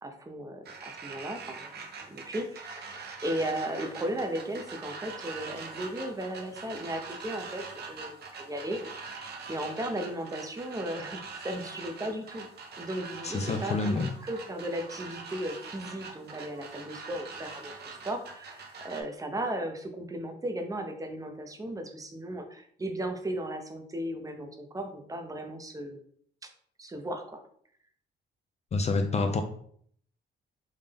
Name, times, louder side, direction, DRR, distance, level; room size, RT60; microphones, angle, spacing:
voice 1, 0.0-1.7 2.0-12.5 12.8-26.0 26.4-26.5 26.8-27.4, right 1 dB, 15° right, 5 dB, 0.7 m, -36 dB
sound 1, 0.6-19.0, right 4 dB, 55° right, 0.8 m, -43 dB
voice 2, 13.2-14.1 28.7-29.4, left 3 dB, 35° left, 7 dB, 0.4 m, -27 dB
3.6 x 2.7 x 3.4 m, 0.62 s
cardioid pair, 90°, 20 cm